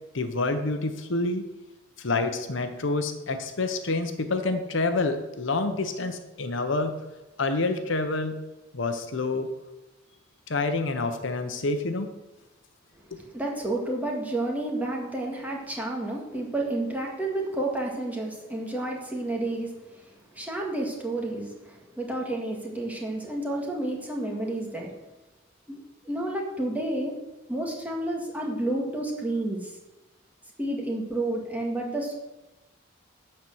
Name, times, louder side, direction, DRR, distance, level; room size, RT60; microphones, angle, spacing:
voice 1, 0.1-1.4 2.0-6.9 7.4-8.3 8.7-9.5 10.5-12.1 13.1-13.2, left 3 dB, 65° left, 7 dB, 0.9 m, -27 dB
voice 2, 13.1-20.1 20.3-24.9 25.7-25.8 26.1-27.1 27.5-29.7 30.6-32.1, right 1 dB, 10° right, -1 dB, 1.8 m, -30 dB
11.5 x 4.4 x 7.7 m, 1.1 s
head